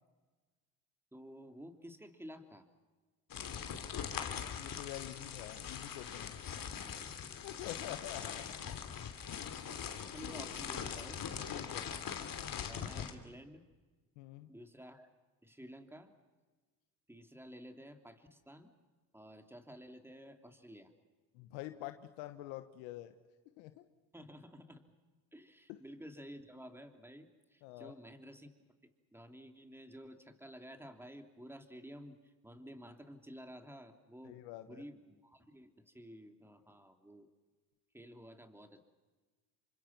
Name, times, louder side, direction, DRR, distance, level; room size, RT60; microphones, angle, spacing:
voice 1, 1.1-2.7 4.3-4.5 6.7-7.2 7.9-8.0 9.7-11.3 12.7-13.6 14.5-15.1 15.4-16.1 17.1-18.7 19.1-20.9 24.1-24.8 25.3-28.5 28.8-34.4 34.7-37.3 37.9-38.8, equal, 5° right, 6 dB, 3.2 m, -52 dB
sound 1, 3.3-13.1, left 8 dB, 55° left, 3.0 m, -42 dB
voice 2, 4.2-6.4 7.4-8.6 9.3-9.5 11.5-11.9 14.2-14.5 21.3-23.1 23.6-23.8 25.7-25.8 27.6-27.9 34.2-34.8, left 15 dB, 90° left, 9 dB, 1.2 m, -47 dB
29.0 x 24.5 x 6.0 m, 1.3 s
supercardioid pair, 75°, 41 cm